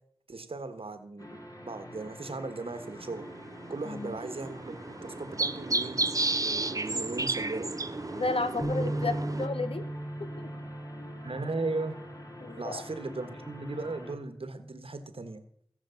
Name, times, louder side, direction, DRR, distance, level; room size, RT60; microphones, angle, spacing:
voice 1, 0.3-3.2 3.7-7.7 8.8-9.2 11.2-12.0 12.6-15.4, right 3 dB, 70° right, 9 dB, 1.4 m, -37 dB
sound 1, 1.2-14.2, left 1 dB, 35° left, 3.2 m, -47 dB
sound 2, 2.7-9.5, right 2 dB, 35° right, 0.7 m, -33 dB
voice 2, 3.8-4.2 8.1-9.1 9.4-9.8 10.2-10.3 12.4-12.8, left 3 dB, 70° left, 10 dB, 1.2 m, -32 dB
sound 3, 8.6-14.9, right 1 dB, 20° left, 6.5 m, -38 dB
16.0 x 6.9 x 7.0 m, 0.67 s
wide cardioid pair, 45°, 10 cm